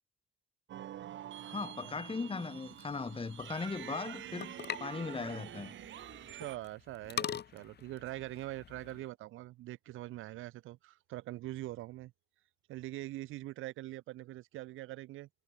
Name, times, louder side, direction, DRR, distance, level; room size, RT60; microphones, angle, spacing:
sound 1, 0.7-6.6, right 12 dB, 70° right, 2.1 m, -47 dB
voice 1, 1.4-5.7, left 4 dB, 25° left, 3.3 m, -38 dB
sound 2, 2.7-9.1, left 8 dB, 55° left, 4.8 m, -44 dB
voice 2, 6.3-12.1 12.7-15.3, right 16 dB, 90° right, 1.4 m, -43 dB
cardioid pair, 90°, 20 cm